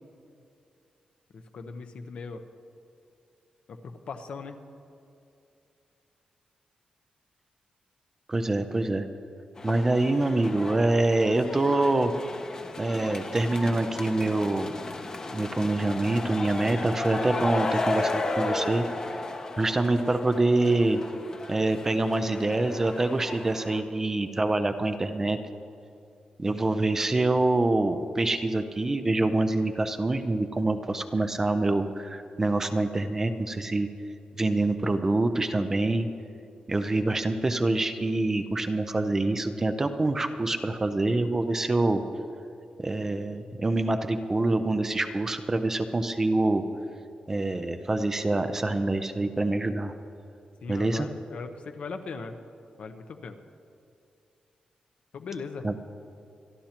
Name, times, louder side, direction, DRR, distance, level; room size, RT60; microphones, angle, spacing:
voice 1, 1.3-2.4 3.7-4.6 50.6-52.4 52.8-53.4 55.1-55.7, left 4 dB, 55° left, 7 dB, 0.9 m, -39 dB
voice 2, 8.3-9.1 9.6-12.1 12.8-14.7 15.3-18.8 19.6-21.0 21.5-25.4 26.4-33.9 34.4-36.1 36.7-42.0 42.8-46.6 47.3-49.9 50.7-51.1 55.6-55.7, right 2 dB, 20° right, 8 dB, 0.5 m, -25 dB
sound 1, 9.6-23.8, left 2 dB, 30° left, 0.8 m, -34 dB
26.5 x 11.5 x 2.9 m, 2.6 s
wide cardioid pair, 170°, 2 cm